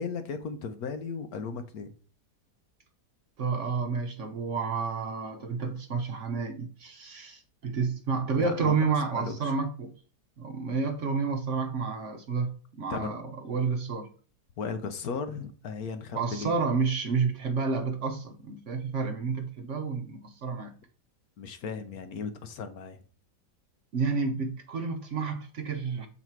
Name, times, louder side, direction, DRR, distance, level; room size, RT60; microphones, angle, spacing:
voice 1, 0.0-1.9 8.4-8.7 9.1-9.5 12.9-13.1 14.6-16.5 21.4-23.0, left 5 dB, 65° left, 1.2 m, -36 dB
voice 2, 3.4-9.9 10.4-14.1 16.1-20.7 23.9-26.1, right 5 dB, 55° right, 1.0 m, -30 dB
7.2 x 4.1 x 4.5 m
omnidirectional pair, 1.8 m